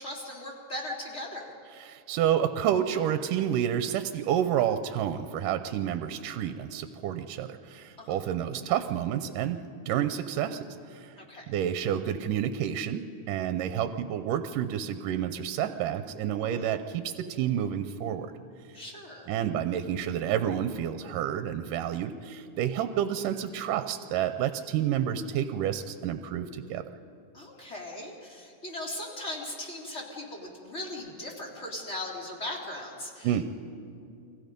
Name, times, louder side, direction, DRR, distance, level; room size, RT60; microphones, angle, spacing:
voice 1, 0.0-1.5 8.0-8.2 11.2-11.4 16.5-16.6 18.7-19.3 27.3-33.3, left 1 dB, 20° left, -2 dB, 2.8 m, -38 dB
voice 2, 1.7-11.1 11.5-18.3 19.3-26.8 33.2-33.4, right 10 dB, 80° right, 9 dB, 2.3 m, -29 dB
29.5 x 22.5 x 5.3 m, 2.5 s
omnidirectional pair, 3.8 m